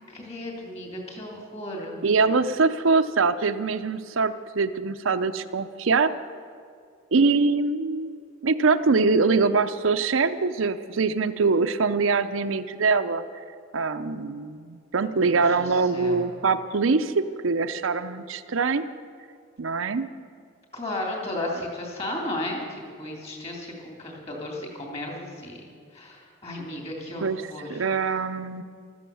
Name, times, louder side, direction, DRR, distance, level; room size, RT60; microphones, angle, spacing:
voice 1, 0.1-2.0 15.2-16.3 20.7-25.6 25.9-27.9, left 1 dB, 30° left, 0 dB, 3.2 m, -34 dB
voice 2, 2.0-6.1 7.1-13.2 13.7-18.8 19.6-20.1 27.2-27.4 27.7-28.6, right 4 dB, 75° right, 9 dB, 0.6 m, -23 dB
14.5 x 13.0 x 7.0 m, 2.2 s
head